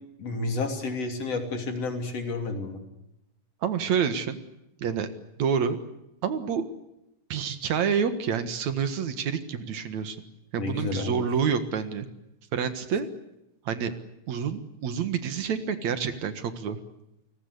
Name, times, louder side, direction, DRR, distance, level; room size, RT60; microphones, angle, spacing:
voice 1, 0.2-2.8 10.6-11.2, left 3 dB, 55° left, 5 dB, 3.9 m, -30 dB
voice 2, 3.6-4.4 4.8-5.1 5.4-5.8 6.2-6.6 7.3-10.2 10.5-12.1 12.5-13.1 13.7-13.9 14.3-16.8, right 7 dB, 70° right, 10 dB, 2.9 m, -28 dB
29.0 x 19.0 x 8.3 m, 0.86 s
omnidirectional pair, 3.4 m